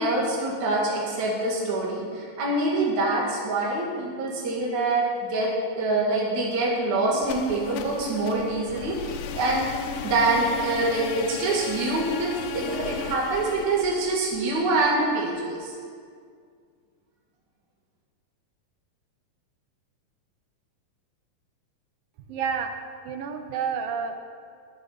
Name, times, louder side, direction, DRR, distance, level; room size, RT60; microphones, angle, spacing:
voice 1, 0.0-5.5 5.8-9.7 10.0-15.7, right 2 dB, 60° right, -4 dB, 3.5 m, -25 dB
sound 1, 7.2-15.1, left 8 dB, 80° left, 2.3 m, -35 dB
voice 2, 22.3-22.7 23.0-24.2, right 6 dB, 90° right, 5 dB, 2.8 m, -29 dB
16.0 x 6.9 x 9.8 m, 2.1 s
omnidirectional pair, 3.9 m